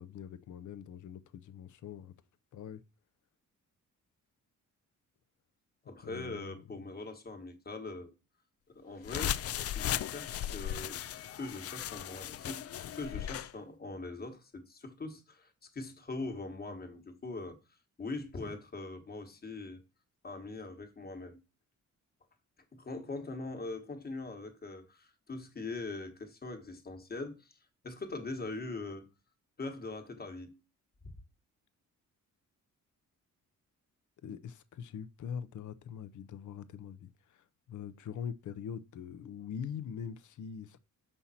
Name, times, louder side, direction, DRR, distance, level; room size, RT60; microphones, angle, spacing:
voice 1, 0.0-2.1 2.5-2.8 6.0-6.6 12.8-12.9 34.2-40.8, left 8 dB, 70° left, 0.8 m, -43 dB
voice 2, 5.8-8.1 8.7-9.4 9.7-17.6 18.0-19.8 20.2-21.4 22.7-27.6 27.8-29.1 29.6-30.6 31.0-31.1, left 3 dB, 30° left, 1.4 m, -42 dB
sound 1, 9.0-13.5, left 11 dB, 50° left, 0.4 m, -36 dB
7.3 x 5.5 x 4.2 m
wide cardioid pair, 170°, 31 cm